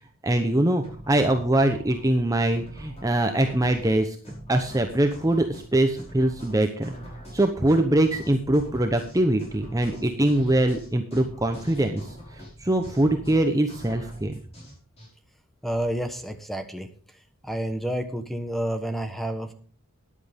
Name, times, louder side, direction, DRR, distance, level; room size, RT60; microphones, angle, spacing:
voice 1, 0.2-4.2 4.5-7.0 7.3-14.4, right 1 dB, 15° right, 5 dB, 0.9 m, -23 dB
sound 1, 0.8-15.1, right 1 dB, 30° left, 5.6 m, -43 dB
voice 2, 15.6-16.9 17.4-19.5, right 1 dB, ahead, 7 dB, 1.2 m, -29 dB
13.5 x 10.5 x 3.6 m, 0.42 s
head